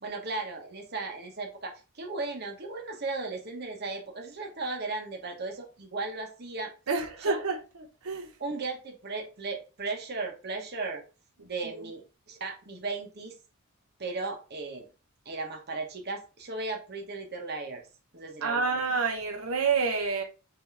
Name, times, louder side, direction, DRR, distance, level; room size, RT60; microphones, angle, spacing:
voice 1, 0.0-6.7 7.2-7.4 8.4-11.0 11.4-13.4 14.0-14.9 15.2-17.9 18.1-18.8, right 3 dB, 50° right, 1.0 m, -36 dB
voice 2, 6.9-8.3 11.6-11.8 18.4-20.2, right 4 dB, 85° right, 0.8 m, -28 dB
5.7 x 2.8 x 3.3 m
head